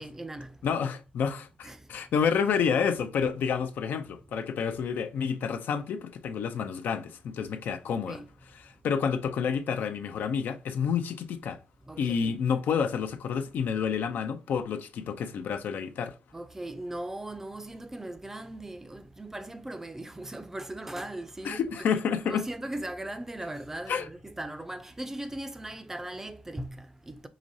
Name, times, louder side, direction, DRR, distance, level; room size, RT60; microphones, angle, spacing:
voice 1, 0.0-0.6 1.6-1.9 8.1-8.3 11.9-12.3 16.3-21.7 22.3-27.3, right 1 dB, 15° right, 0.4 m, -39 dB
voice 2, 0.6-8.2 8.6-11.6 12.0-16.1 21.4-22.5 23.9-24.1, left 6 dB, 80° left, 0.5 m, -29 dB
4.9 x 3.1 x 2.6 m
cardioid pair, 120°, 3 cm